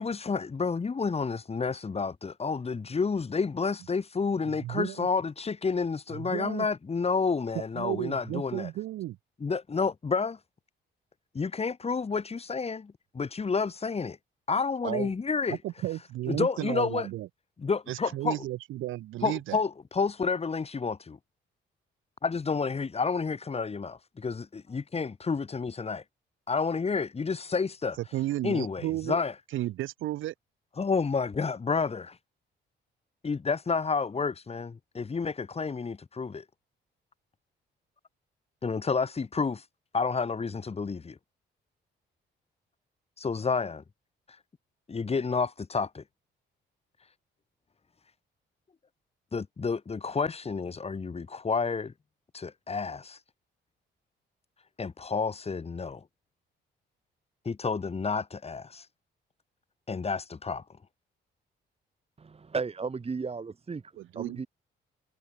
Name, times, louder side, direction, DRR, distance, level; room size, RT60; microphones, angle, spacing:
voice 1, 0.0-8.7 9.4-10.4 11.3-14.2 14.5-15.6 16.3-17.1 17.6-18.4 19.2-21.2 22.2-26.0 26.5-28.0 28.4-29.3 30.8-32.2 33.2-36.4 38.6-39.7 39.9-41.2 43.2-43.8 44.3-44.4 44.9-46.0 47.0-47.1 49.3-51.9 52.3-53.2 54.8-56.0 57.4-58.9 59.9-60.6, left 5 dB, 30° left, 2.4 m, -30 dB
voice 2, 4.4-5.1 6.1-6.7 7.7-9.2 14.8-15.1 15.5-17.3 17.9-19.6 28.1-29.2 29.5-30.3 64.0-64.5, right 15 dB, 85° right, 1.5 m, -33 dB
voice 3, 62.2-64.5, right 4 dB, 30° right, 2.1 m, -35 dB
cardioid pair, 90°, 20 cm